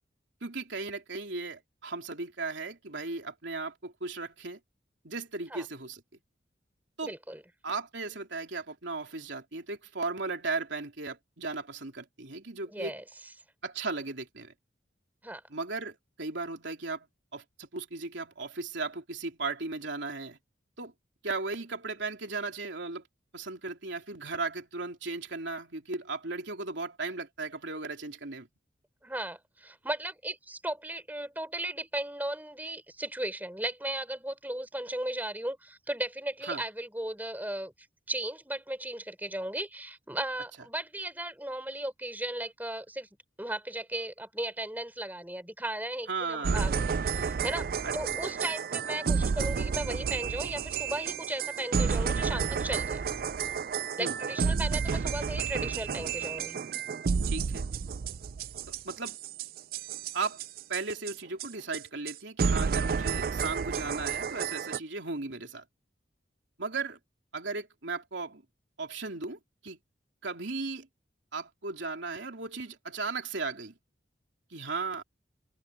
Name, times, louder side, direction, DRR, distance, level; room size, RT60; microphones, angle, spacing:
voice 1, 0.4-4.6 5.0-6.0 7.0-7.1 7.6-12.9 13.6-14.5 15.5-17.1 17.3-20.4 20.8-20.9 21.2-23.0 23.3-28.5 36.5-36.6 46.1-46.7 47.8-47.9 54.0-54.2 57.3-57.7 58.7-59.2 60.1-60.4 60.7-65.6 66.6-67.0 67.3-68.4 68.8-69.8 70.2-70.9 71.3-73.7 74.5-75.0, right 3 dB, 80° right, 3.2 m, -36 dB
voice 2, 7.0-7.4 12.7-13.0 15.2-15.4 29.0-37.7 38.1-43.1 43.4-53.1 54.0-56.6, right 1 dB, 10° right, 3.7 m, -36 dB
sound 1, 46.4-61.1 61.4-61.5 61.7-61.8 62.1-62.2 62.4-64.8, right 5 dB, 50° right, 0.4 m, -31 dB
open air
head